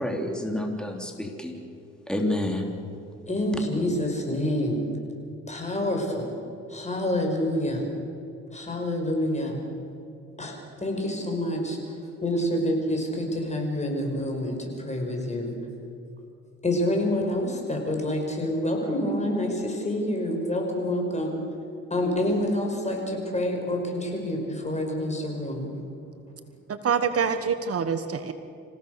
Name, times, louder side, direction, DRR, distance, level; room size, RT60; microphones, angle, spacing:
voice 1, 0.0-1.6 2.1-2.7, left 1 dB, 5° left, 2 dB, 3.4 m, -29 dB
voice 2, 3.3-4.9 5.5-6.3 6.7-7.8 8.5-9.6 10.4-11.8 12.2-15.5 16.6-21.4 21.9-25.7, left 1 dB, 20° left, 2 dB, 5.8 m, -27 dB
voice 3, 26.7-28.3, right 6 dB, 50° right, 9 dB, 1.3 m, -26 dB
27.0 x 16.5 x 6.8 m, 2.7 s
cardioid pair, 90°, 30 cm